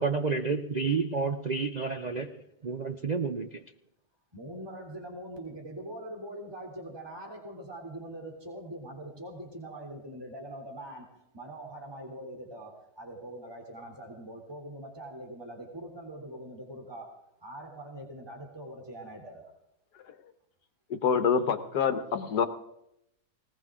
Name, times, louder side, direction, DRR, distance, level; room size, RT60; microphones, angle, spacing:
voice 1, 0.0-2.4 2.6-3.6, right 4 dB, 65° right, 0.4 m, -30 dB
voice 2, 4.3-19.5, right 1 dB, 15° right, 3.0 m, -43 dB
voice 3, 20.9-22.5, left 6 dB, 80° left, 1.7 m, -26 dB
20.0 x 18.5 x 3.7 m
omnidirectional pair, 1.7 m